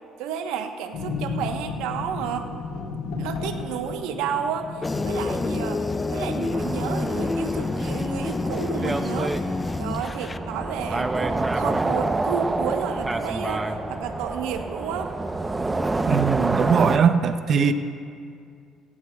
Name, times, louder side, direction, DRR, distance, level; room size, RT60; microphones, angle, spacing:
voice 1, 0.2-2.5 3.2-5.8 6.1-9.4 9.8-15.1, right 7 dB, 85° right, 6 dB, 1.0 m, -31 dB
sound 1, 0.9-14.2, left 4 dB, 80° left, 2.4 m, -37 dB
sound 2, 4.8-10.4, left 3 dB, 25° left, 0.5 m, -28 dB
sound 3, 6.5-17.0, right 2 dB, 20° right, 0.7 m, -28 dB
voice 2, 16.1-17.7, right 6 dB, 55° right, 10 dB, 0.7 m, -20 dB
17.0 x 17.0 x 2.3 m, 2.3 s
supercardioid pair, 75°, 0 cm